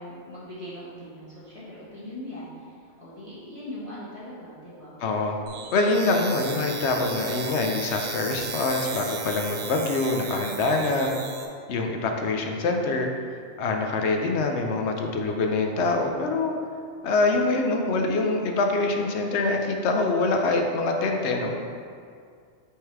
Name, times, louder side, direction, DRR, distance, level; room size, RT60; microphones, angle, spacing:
voice 1, 0.0-5.0, left 1 dB, 25° left, -10 dB, 1.4 m, -40 dB
voice 2, 5.0-5.4 5.7-11.1 11.7-13.1 13.6-16.5 17.0-21.5, left 3 dB, 65° left, 3 dB, 0.8 m, -25 dB
sound 1, 5.5-11.5, right 4 dB, 55° right, 0.7 m, -35 dB
5.6 x 3.7 x 4.6 m, 2.2 s
omnidirectional pair, 1.3 m